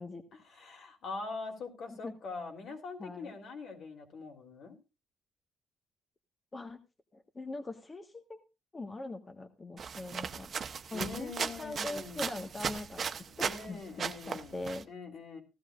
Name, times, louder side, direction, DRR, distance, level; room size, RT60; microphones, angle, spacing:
voice 1, 0.3-4.8 10.9-12.3 13.4-15.4, left 4 dB, 70° left, 2 dB, 3.7 m, -43 dB
voice 2, 3.0-3.3 6.5-6.8 7.1-8.4 8.7-10.5 10.9-13.1 13.4-14.8, left 2 dB, 25° left, 4 dB, 1.5 m, -42 dB
sound 1, 9.8-13.7 14.0-14.8, right 6 dB, 50° right, 1.0 m, -37 dB
16.5 x 13.0 x 2.5 m, 0.29 s
cardioid pair, 90°, 0 cm